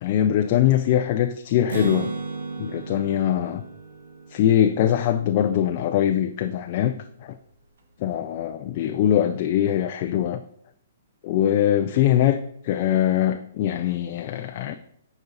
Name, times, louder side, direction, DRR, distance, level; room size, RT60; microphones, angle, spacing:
voice 1, 0.0-2.1 2.6-3.6 4.3-7.0 7.2-7.4 8.0-10.4 11.2-14.7, left 11 dB, 30° left, 0.4 m, -22 dB
Acoustic guitar, 1.7-5.4, right 4 dB, 80° right, 1.5 m, -34 dB
9.6 x 5.3 x 3.9 m
hypercardioid pair, 170°, 0 cm